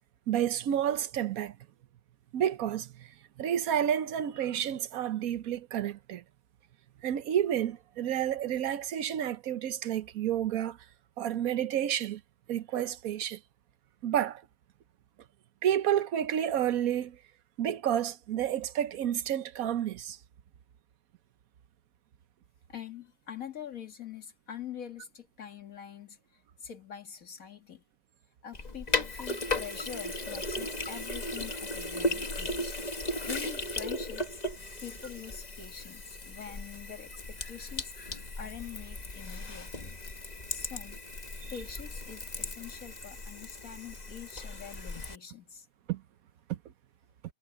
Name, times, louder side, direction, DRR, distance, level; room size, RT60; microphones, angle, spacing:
voice 1, 0.3-1.6 2.3-3.1 3.4-6.2 7.0-10.8 11.2-12.2 12.5-13.4 14.0-14.4 15.6-17.2 17.6-20.2 41.4-41.5 45.9-46.0 46.5-46.6, right 10 dB, 80° right, 1.3 m, -30 dB
voice 2, 22.7-27.8 28.4-32.8 33.1-34.5 34.8-40.0 40.5-41.0 41.5-45.7, left 8 dB, 75° left, 2.2 m, -45 dB
Sink (filling or washing), 28.5-45.2, left 2 dB, 30° left, 1.5 m, -36 dB
omnidirectional pair, 1.5 m